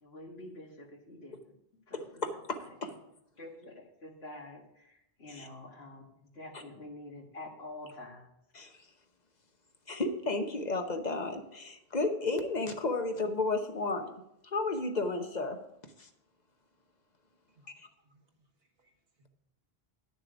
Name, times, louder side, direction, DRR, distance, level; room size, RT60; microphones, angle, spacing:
voice 1, 0.0-1.5 1.9-2.2 2.8-2.9 3.4-8.3, left 2 dB, 75° left, 1 dB, 1.9 m, -47 dB
voice 2, 1.9-2.9 5.3-5.5 6.5-6.6 8.5-8.8 9.9-14.1 14.4-16.1 17.8-17.9, left 3 dB, 45° left, 6 dB, 1.0 m, -33 dB
voice 3, 17.5-18.9 19.2-19.3, right 1 dB, 75° right, 2 dB, 1.6 m, -69 dB
10.5 x 6.8 x 5.0 m, 0.78 s
omnidirectional pair, 1.0 m